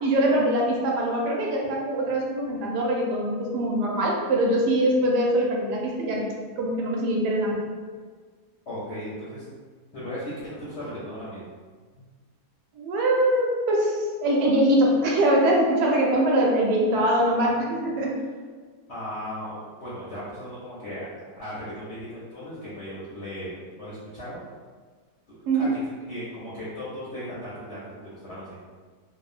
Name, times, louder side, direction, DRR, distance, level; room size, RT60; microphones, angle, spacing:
voice 1, 0.0-6.3 6.6-7.6 12.7-18.2 25.5-25.7, right 1 dB, 90° right, -2 dB, 1.2 m, -23 dB
voice 2, 8.7-9.4 9.9-11.5 18.9-21.1 21.3-24.4 25.3-25.8 26.1-28.6, equal, 60° left, -9 dB, 0.7 m, -37 dB
2.9 x 2.1 x 2.4 m, 1.5 s
omnidirectional pair, 1.7 m